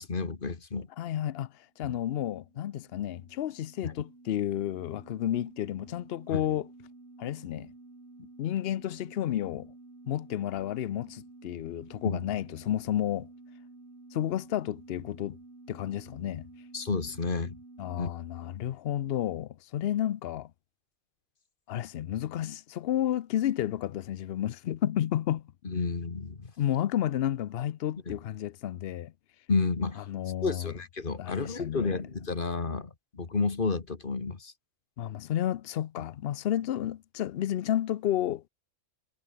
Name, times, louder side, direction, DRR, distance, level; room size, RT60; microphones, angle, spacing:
voice 1, 0.0-0.9 1.8-2.0 3.8-3.9 6.3-6.4 12.0-12.3 16.7-17.6 18.0-18.1 25.6-26.5 28.1-28.2 29.5-30.0 30.4-34.5, left 4 dB, 40° left, 1.8 m, -31 dB
voice 2, 1.0-6.7 7.2-7.7 8.4-9.7 10.0-13.3 14.1-15.4 15.7-16.5 17.8-20.5 21.7-25.5 26.6-29.1 30.1-30.7 31.2-31.9 35.0-38.5, left 11 dB, 60° left, 0.8 m, -31 dB
sound 1, 1.9-18.1, right 2 dB, 55° right, 4.0 m, -52 dB
omnidirectional pair, 1.3 m